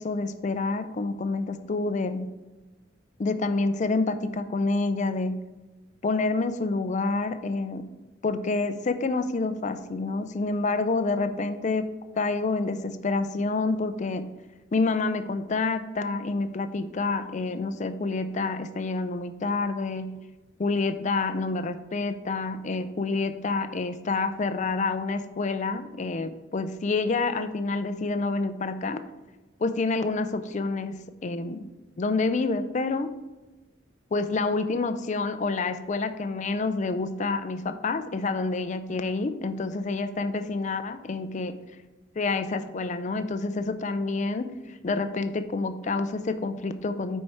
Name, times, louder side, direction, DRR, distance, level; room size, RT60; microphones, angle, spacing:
voice 1, 0.0-2.3 3.2-5.4 6.0-7.9 8.2-14.3 14.7-20.2 20.6-29.0 29.6-31.7 32.0-33.1 34.1-41.6 42.2-47.2, left 3 dB, 35° left, 10 dB, 0.4 m, -28 dB
9.7 x 4.6 x 4.2 m, 1.2 s
head